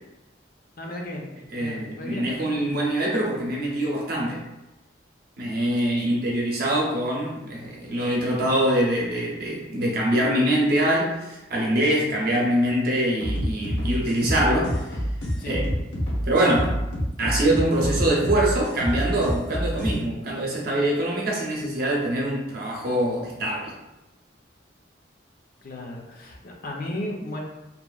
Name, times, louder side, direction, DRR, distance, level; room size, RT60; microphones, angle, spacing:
voice 1, 0.8-1.3 1.6-2.4 5.8-6.0 15.4-15.7 25.6-27.4, left 1 dB, 50° left, 1 dB, 0.5 m, -35 dB
voice 2, 1.5-4.4 5.4-15.0 15.5-15.7 16.2-16.8 17.2-23.7, right 1 dB, 55° right, -3 dB, 0.7 m, -24 dB
sound 1, 13.2-20.0, equal, 90° left, 0.8 m, -27 dB
2.8 x 2.5 x 2.3 m, 0.98 s
head